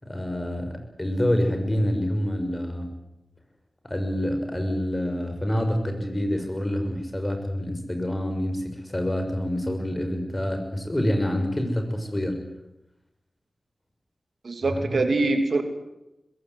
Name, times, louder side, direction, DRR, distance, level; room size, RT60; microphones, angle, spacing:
voice 1, 0.0-2.9 3.8-12.4 14.7-15.0, equal, 25° left, 6 dB, 6.1 m, -27 dB
voice 2, 14.4-15.6, right 2 dB, 80° right, 6 dB, 3.0 m, -23 dB
21.0 x 17.0 x 9.7 m, 0.88 s
cardioid pair, 45°, 0 cm